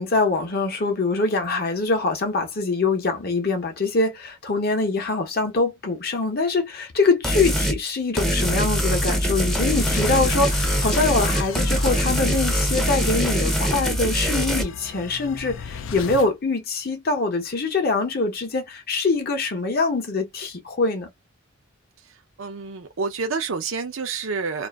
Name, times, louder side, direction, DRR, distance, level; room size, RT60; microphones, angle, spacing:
voice 1, 0.0-21.1, left 3 dB, 50° left, 0.7 m, -24 dB
sound 1, 7.2-7.8 8.2-14.6, equal, ahead, 0.5 m, -23 dB
sound 2, 9.0-16.3, left 6 dB, 75° left, 0.4 m, -36 dB
voice 2, 22.4-24.7, right 4 dB, 80° right, 0.6 m, -28 dB
2.5 x 2.4 x 2.3 m
head